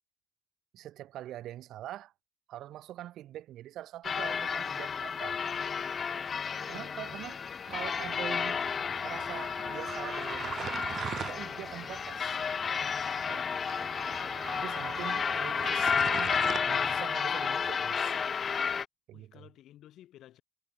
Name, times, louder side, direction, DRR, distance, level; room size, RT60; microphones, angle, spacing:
voice 1, 0.7-2.1 2.5-5.4 6.7-7.4 7.7-8.7 9.0-12.4 14.5-16.4 16.7-18.2 19.1-19.5, right 13 dB, 85° right, 2.5 m, -44 dB
sound 1, 4.0-18.9, left 6 dB, 55° left, 0.4 m, -32 dB
voice 2, 6.6-7.2 19.1-20.4, left 13 dB, 85° left, 1.7 m, -55 dB
sound 2, 7.7-17.0, right 8 dB, 65° right, 1.1 m, -42 dB
cardioid pair, 65°, 0 cm